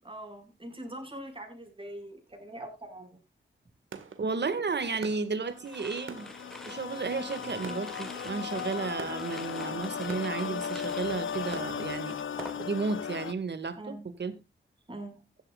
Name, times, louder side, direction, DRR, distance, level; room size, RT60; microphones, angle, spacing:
voice 1, 0.0-3.2 13.8-14.0 14.9-15.2, right 1 dB, 25° right, 4 dB, 5.9 m, -43 dB
sound 1, 3.9-12.5, right 6 dB, 85° right, 1.9 m, -48 dB
voice 2, 4.2-6.3 6.7-12.2 12.6-13.9 14.2-14.3, right 4 dB, 60° right, 12 dB, 2.1 m, -33 dB
sound 2, 5.5-13.3, left 7 dB, 85° left, 0.8 m, -37 dB
sound 3, 5.6-13.1 13.3-13.8, equal, ahead, 1.6 m, -48 dB
16.0 x 12.5 x 2.5 m, 0.27 s
wide cardioid pair, 80°, 20 cm